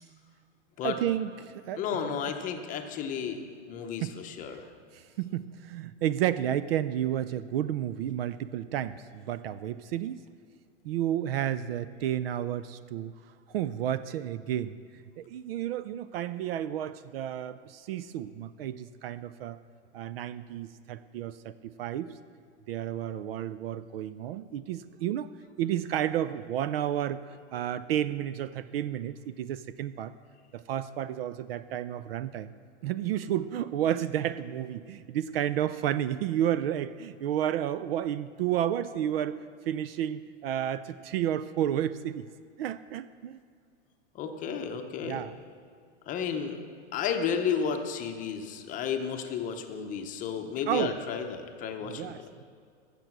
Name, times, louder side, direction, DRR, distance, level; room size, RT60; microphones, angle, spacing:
voice 1, 0.8-1.8 4.0-4.1 5.2-10.2 10.8-13.1 13.5-14.7 15.2-19.6 19.9-22.1 22.7-25.3 25.6-27.2 27.5-30.1 30.5-32.5 32.8-39.4 39.7-42.2 42.6-43.4 45.0-45.3 50.7-50.9 51.9-52.4, right 11 dB, 55° right, 15 dB, 0.4 m, -31 dB
voice 2, 1.8-3.4 3.7-4.7 44.1-45.3 46.1-46.6 46.9-52.3, left 7 dB, 20° left, 5 dB, 0.8 m, -32 dB
15.5 x 6.8 x 6.0 m, 2.1 s
supercardioid pair, 150°, 36 cm